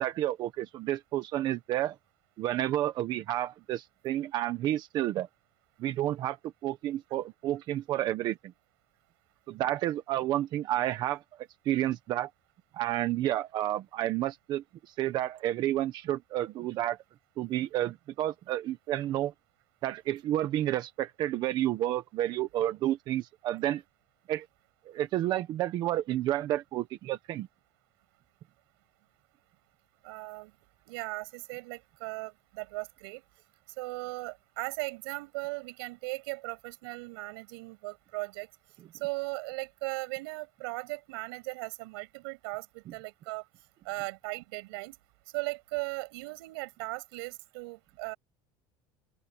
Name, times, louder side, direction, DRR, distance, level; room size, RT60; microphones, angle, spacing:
voice 1, 0.0-2.0 2.4-5.3 5.8-6.4 6.6-8.4 9.5-11.2 11.6-12.3 12.7-17.0 17.4-19.3 19.8-23.8 24.3-24.5 24.9-27.5, right 13 dB, 35° right, 1.1 m, -30 dB
voice 2, 30.0-30.5 30.9-33.2 33.8-38.5 38.9-43.4 43.8-45.0 45.3-48.2, right 25 dB, 85° right, 7.3 m, -38 dB
open air
cardioid pair, 180°, 12 cm